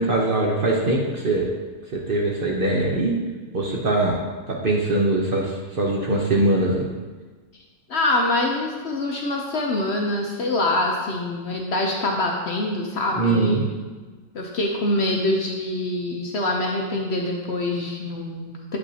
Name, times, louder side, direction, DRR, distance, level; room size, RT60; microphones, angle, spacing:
voice 1, 0.0-1.5 1.9-3.2 3.5-4.2 4.5-6.9 13.1-13.6, right 2 dB, 45° right, -2 dB, 0.8 m, -22 dB
voice 2, 7.9-13.6 14.3-18.8, left 2 dB, 55° left, 0 dB, 0.8 m, -25 dB
8.3 x 5.5 x 2.8 m, 1.3 s
omnidirectional pair, 1.5 m